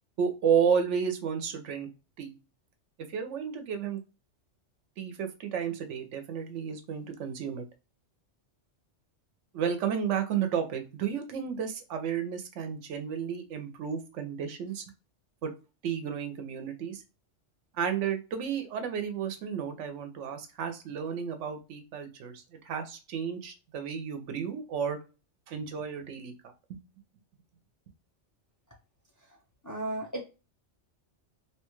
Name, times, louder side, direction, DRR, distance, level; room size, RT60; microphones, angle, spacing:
voice 1, 0.2-1.9 2.2-2.3 3.1-4.0 5.0-7.6 9.5-14.8 15.4-15.5 15.8-17.0 17.7-25.0 25.5-26.3 26.7-26.8, right 7 dB, 85° right, 6 dB, 1.0 m, -32 dB
voice 2, 29.6-30.2, right 2 dB, 25° left, -1 dB, 0.5 m, -34 dB
2.9 x 2.2 x 2.9 m, 0.31 s
omnidirectional pair, 1.2 m